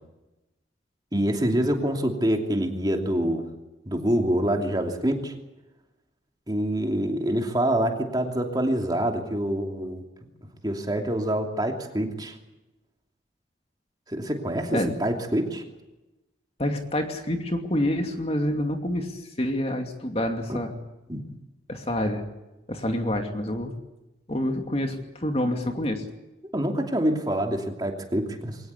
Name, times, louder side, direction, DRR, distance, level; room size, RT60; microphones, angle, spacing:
voice 1, 1.1-3.4 3.9-5.3 6.5-10.0 10.6-12.4 14.1-15.6 20.5-20.6 21.1-21.2 26.5-28.6, right 1 dB, 20° right, 3 dB, 2.8 m, -26 dB
voice 2, 16.6-20.7 21.7-22.2 22.7-23.7 24.3-26.0, left 1 dB, 35° left, 4 dB, 2.6 m, -27 dB
23.5 x 19.0 x 8.4 m, 1.0 s
head